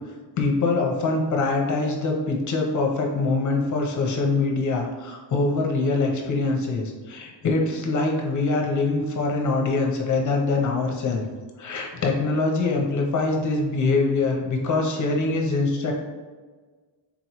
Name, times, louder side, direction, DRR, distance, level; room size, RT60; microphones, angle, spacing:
voice 1, 0.4-11.2 11.6-15.9, left 3 dB, 40° left, 1 dB, 0.6 m, -24 dB
4.1 x 3.0 x 2.9 m, 1.4 s
cardioid pair, 175°, 49 cm